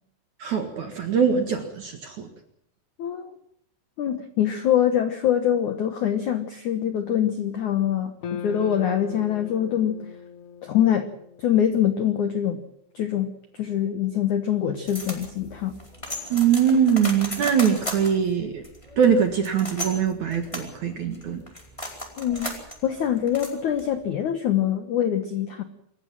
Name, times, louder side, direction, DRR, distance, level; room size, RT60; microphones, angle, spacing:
voice 1, 0.4-2.3 16.3-18.6 19.0-21.4, right 7 dB, 55° right, 6 dB, 2.2 m, -22 dB
voice 2, 3.0-3.3 4.0-10.1 10.6-11.1 11.4-12.6 12.9-15.8 22.2-25.6, left 10 dB, 85° left, 9 dB, 1.7 m, -24 dB
sound 1, 8.2-12.6, left 6 dB, 60° left, 2.3 m, -39 dB
sound 2, 14.9-24.1, left 1 dB, 5° left, 3.9 m, -36 dB
26.5 x 14.5 x 7.5 m, 0.73 s
omnidirectional pair, 5.6 m